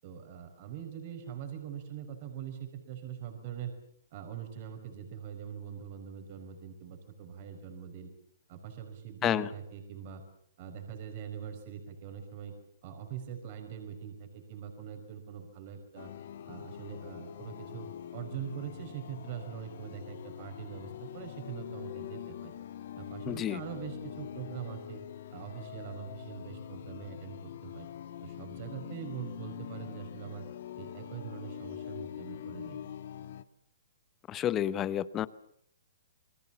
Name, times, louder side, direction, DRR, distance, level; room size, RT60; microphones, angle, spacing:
voice 1, 0.0-3.7 4.1-8.1 8.5-10.2 10.6-12.5 12.8-16.1 16.4-22.5 23.0-25.0 25.3-27.9 28.2-30.5 30.8-32.8, right 8 dB, 45° right, 5 dB, 5.2 m, -43 dB
sound 1, 16.0-33.4, left 10 dB, 60° left, 1.5 m, -44 dB
voice 2, 23.3-23.6 34.3-35.3, left 11 dB, 20° left, 16 dB, 1.0 m, -30 dB
29.0 x 21.0 x 7.2 m, 0.66 s
hypercardioid pair, 145°, 0 cm